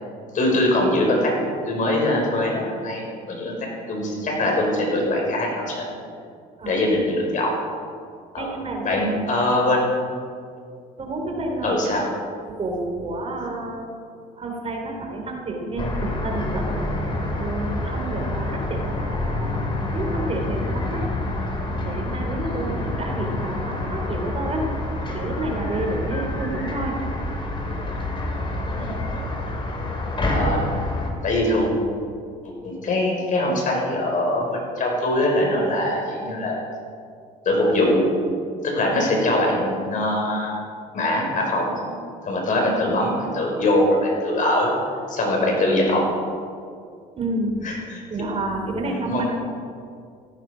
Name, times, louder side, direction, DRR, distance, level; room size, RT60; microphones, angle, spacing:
voice 1, 0.3-1.3 1.6-5.9 6.7-7.6 8.3-8.5 8.8-10.0 11.6-12.1 28.7-29.0 30.3-30.6 31.2-31.7 32.4-36.6 37.5-38.0 38.6-40.6 40.9-41.7 42.2-44.7 45.1-46.0 47.6-48.0 49.0-49.3, left 1 dB, 50° left, 0 dB, 5.2 m, -22 dB
voice 2, 8.4-9.0 11.0-11.8 12.6-13.9 14.4-16.7 17.4-21.0 21.8-24.7 25.1-26.9 47.1-47.7 48.1-49.2, right 2 dB, 35° right, 1 dB, 3.3 m, -29 dB
sound 1, 15.8-31.1, left 2 dB, 30° left, 3.1 m, -27 dB
16.5 x 15.5 x 5.0 m, 2.3 s
cardioid pair, 110°, 17 cm